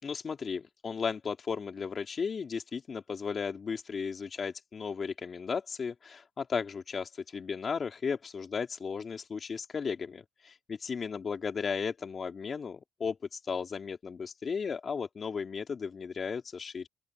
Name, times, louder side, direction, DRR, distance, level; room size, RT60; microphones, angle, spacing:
voice 1, 0.0-16.9, left 5 dB, 45° left, 3.0 m, -35 dB
open air
cardioid pair, 90°, 0 cm